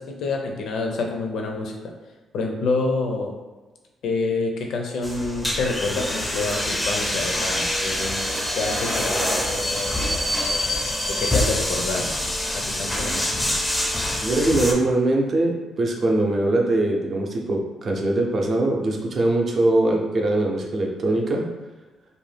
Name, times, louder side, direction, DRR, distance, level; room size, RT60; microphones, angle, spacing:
voice 1, 0.0-1.7 2.3-3.3 4.0-8.3 8.6-10.7 11.1-12.0 12.5-13.3, left 3 dB, 75° left, 2 dB, 0.5 m, -27 dB
sound 1, 5.0-14.7, left 1 dB, 10° left, 0.4 m, -25 dB
voice 2, 12.9-13.2 14.2-21.5, right 2 dB, 45° right, 0 dB, 0.5 m, -22 dB
2.6 x 2.1 x 3.3 m, 1.2 s
cardioid pair, 90°, 0 cm